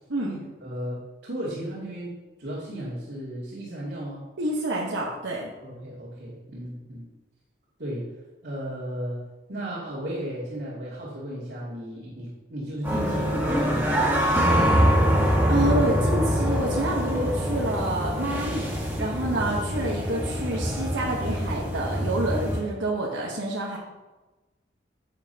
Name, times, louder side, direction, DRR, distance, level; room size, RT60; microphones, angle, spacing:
voice 1, 0.2-4.2 5.6-7.1 7.8-8.1 8.4-9.2 9.5-15.0, equal, 60° right, -10 dB, 2.7 m, -35 dB
voice 2, 4.4-5.5 15.5-18.7 19.0-23.8, right 1 dB, 85° right, -3 dB, 1.2 m, -28 dB
sound 1, 12.8-22.6, equal, 10° right, 1.5 m, -24 dB
11.5 x 7.4 x 2.9 m, 1.1 s
head